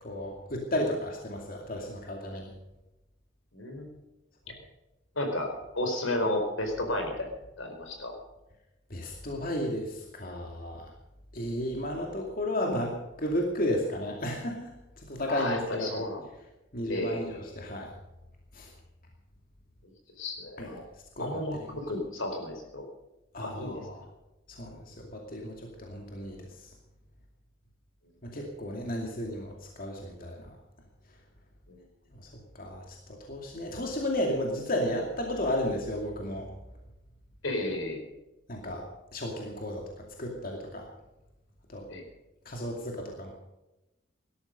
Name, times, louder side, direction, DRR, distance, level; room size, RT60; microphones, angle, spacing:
voice 1, 0.0-2.5 8.9-10.9 11.3-15.9 16.7-17.9 18.5-18.7 20.6-20.7 21.2-21.3 23.3-24.0 24.5-26.7 28.2-30.5 32.2-32.3 32.5-36.5 38.5-40.9 41.7-41.9 42.5-43.3, left 1 dB, 45° left, 1 dB, 2.5 m, -33 dB
voice 2, 3.5-3.9 5.2-7.3 7.6-8.2 15.3-16.2 16.9-17.4 19.8-19.9 20.2-20.8 21.2-22.9 23.4-23.9 31.7-31.8 37.4-38.0 41.9-42.0, left 1 dB, 80° left, 4 dB, 4.6 m, -33 dB
18.5 x 13.0 x 5.3 m, 0.98 s
head